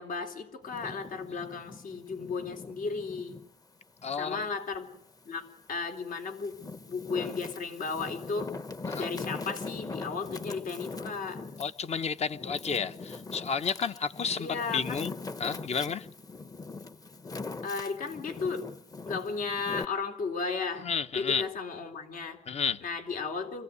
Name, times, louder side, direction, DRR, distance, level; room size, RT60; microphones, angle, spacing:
voice 1, 0.0-3.4 4.2-5.0 5.3-6.6 6.9-8.5 9.0-11.4 14.4-15.0 17.6-18.7 19.1-22.4 22.8-23.6, left 4 dB, 80° left, 5 dB, 3.7 m, -35 dB
Wind, 0.6-3.5 4.0-5.3 5.9-19.8, left 3 dB, 25° left, 0.9 m, -41 dB
voice 2, 4.0-4.5 8.9-9.0 11.6-15.1 15.4-16.1 20.8-21.4 22.5-22.8, left 6 dB, 50° left, 10 dB, 1.1 m, -31 dB
25.5 x 16.5 x 9.6 m, 0.75 s
wide cardioid pair, 175°, 14 cm